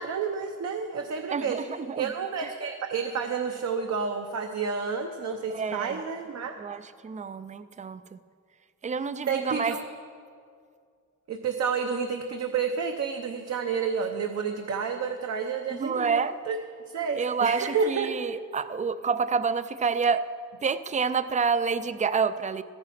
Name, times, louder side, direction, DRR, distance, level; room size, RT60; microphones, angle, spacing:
voice 1, 0.0-1.6 2.0-6.5 9.3-9.9 11.3-16.2 16.5-16.6 16.9-18.1, right 6 dB, 55° right, 4 dB, 0.8 m, -30 dB
voice 2, 1.3-2.1 2.4-2.5 5.5-6.0 6.6-8.2 8.8-9.8 15.7-16.3 17.1-20.3 20.6-22.6, right 5 dB, 25° right, 14 dB, 0.4 m, -28 dB
14.5 x 9.7 x 5.8 m, 2.2 s
wide cardioid pair, 140°, 31 cm